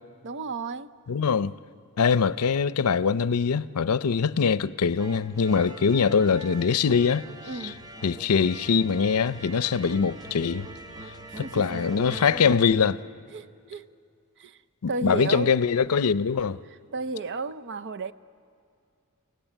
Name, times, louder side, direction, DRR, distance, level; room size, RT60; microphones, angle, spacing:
voice 1, 0.2-0.9 7.5-7.7 11.4-11.8 13.3-13.9 14.4-14.6 14.9-15.5 16.9-18.1, right 3 dB, 55° right, 0.6 m, -33 dB
voice 2, 1.1-1.5 2.0-7.3 7.6-7.7 8.0-10.7 11.4-13.0 14.8-16.6, left 6 dB, 85° left, 0.5 m, -23 dB
sound 1, 5.0-12.6, right 2 dB, 15° right, 0.9 m, -42 dB
29.5 x 17.5 x 9.0 m
head